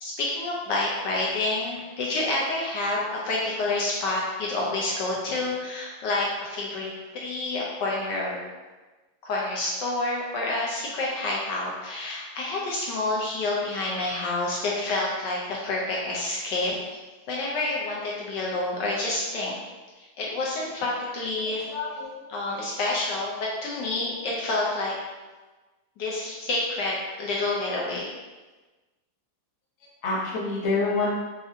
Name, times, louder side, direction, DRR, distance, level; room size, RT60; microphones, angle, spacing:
voice 1, 0.0-8.4 9.2-16.7 17.3-19.6 20.2-21.6 22.3-24.9 26.0-28.1, left 2 dB, 75° left, -4 dB, 1.0 m, -28 dB
voice 2, 21.4-22.2 30.0-31.1, left 3 dB, 45° left, -7 dB, 1.0 m, -27 dB
4.9 x 2.5 x 2.6 m, 1.2 s
omnidirectional pair, 2.3 m